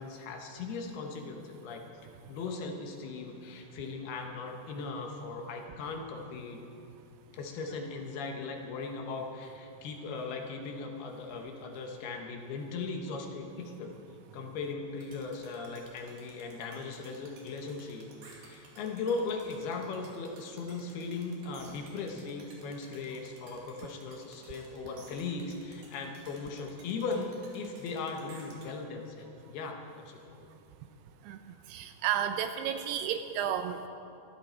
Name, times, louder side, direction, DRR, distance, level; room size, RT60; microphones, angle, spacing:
voice 1, 0.0-1.8 2.3-6.6 7.3-13.9 14.3-30.5, left 4 dB, 70° left, 2 dB, 3.0 m, -38 dB
sound 1, 15.0-28.7, right 3 dB, 60° right, 4.0 m, -55 dB
voice 2, 31.7-33.9, right 9 dB, 80° right, 8 dB, 2.5 m, -32 dB
23.5 x 13.5 x 4.5 m, 2.6 s
omnidirectional pair, 5.0 m